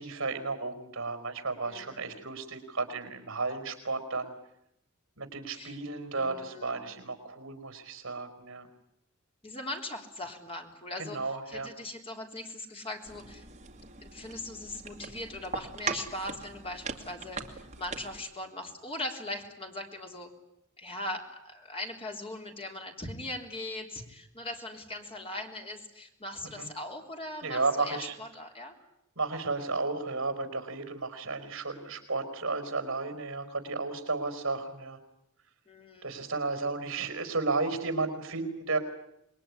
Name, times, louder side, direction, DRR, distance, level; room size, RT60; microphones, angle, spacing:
voice 1, 0.0-4.3 5.2-8.7 11.0-11.7 26.4-26.7 27.4-28.2 29.1-35.0 36.0-38.8, right 3 dB, 65° right, 9 dB, 4.9 m, -33 dB
voice 2, 1.6-2.1 5.5-5.8 6.1-6.7 9.4-11.2 11.5-13.4 14.0-20.3 20.8-28.8 35.7-36.1, left 1 dB, 25° left, 3 dB, 3.5 m, -40 dB
sound 1, 13.0-18.2, right 4 dB, 35° right, 2.1 m, -40 dB
27.0 x 21.5 x 9.9 m, 0.80 s
head